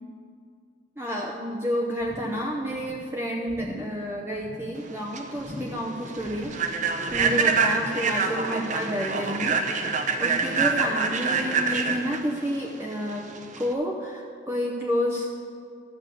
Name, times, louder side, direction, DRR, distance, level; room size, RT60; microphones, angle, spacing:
voice 1, 1.0-13.3 13.6-15.3, equal, 15° right, -1 dB, 0.8 m, -30 dB
sound 1, 2.0-2.5 2.8-3.1 3.5-4.0 4.3-4.8 5.4-5.9 6.2-6.7 7.1-7.6 8.0-8.1, left 1 dB, 10° left, 1.8 m, -40 dB
Human voice / Train, 4.8-13.7, right 5 dB, 40° right, 0.9 m, -26 dB
13.0 x 8.1 x 6.7 m, 2.2 s
head